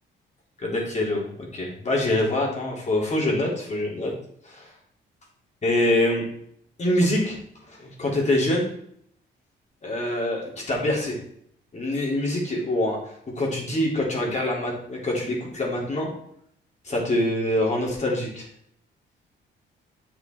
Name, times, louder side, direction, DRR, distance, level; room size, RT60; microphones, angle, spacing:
voice 1, 0.6-4.1 4.4-4.7 5.6-6.3 6.8-7.4 7.7-8.7 9.8-11.2 11.7-13.0 13.3-16.1 16.8-18.4, left 1 dB, 35° left, -3 dB, 3.5 m, -25 dB
8.4 x 6.1 x 4.6 m, 0.69 s
cardioid pair, 90°, 20 cm